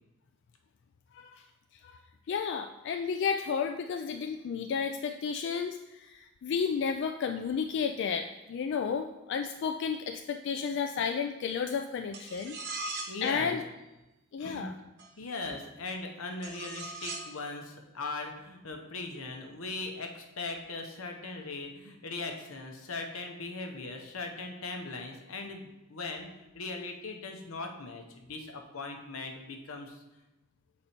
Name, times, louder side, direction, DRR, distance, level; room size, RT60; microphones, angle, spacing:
voice 1, 2.3-12.6 13.2-13.6 14.3-14.7, left 6 dB, 60° left, 6 dB, 0.3 m, -32 dB
sound 1, 12.1-13.2 15.0-15.1 16.4-17.3, right 3 dB, 55° right, 0.9 m, -39 dB
voice 2, 12.8-13.6 14.4-14.7 15.2-26.3 26.5-30.0, left 3 dB, 85° left, 3 dB, 0.9 m, -39 dB
6.6 x 4.2 x 4.3 m, 0.99 s
head